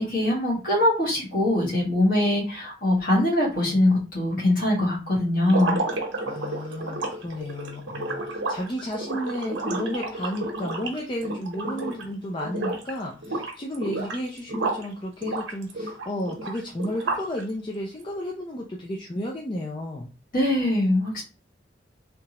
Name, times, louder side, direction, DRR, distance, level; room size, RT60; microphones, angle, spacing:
voice 1, 0.0-5.8 20.3-21.2, left 1 dB, 50° left, -4 dB, 1.5 m, -22 dB
sound 1, 5.4-12.1 12.4-12.9 13.2-14.9 15.2-17.4, right 2 dB, 85° right, 0.9 m, -31 dB
voice 2, 6.3-20.1, equal, 25° left, -1 dB, 0.5 m, -32 dB
3.5 x 2.8 x 2.9 m, 0.33 s
head